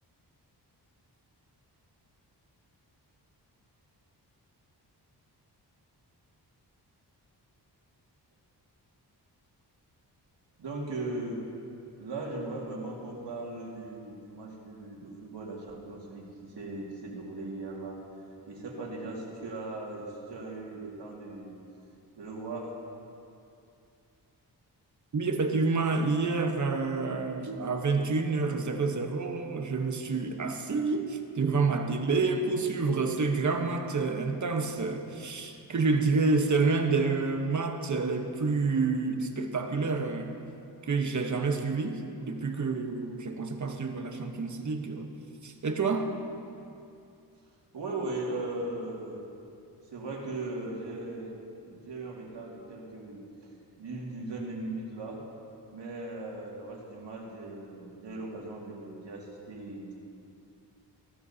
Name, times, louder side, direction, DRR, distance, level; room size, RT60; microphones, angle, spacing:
voice 1, 10.6-11.4 12.0-18.0 18.5-21.5 22.2-22.7 47.7-49.2 49.9-51.3 51.6-53.5 53.8-55.2 55.7-60.0, right 2 dB, 75° right, -2 dB, 2.3 m, -38 dB
voice 2, 25.1-40.3 40.8-45.1 45.4-46.1, right 4 dB, 45° right, 4 dB, 1.1 m, -28 dB
16.0 x 13.0 x 2.8 m, 2.6 s
wide cardioid pair, 100°, 42 cm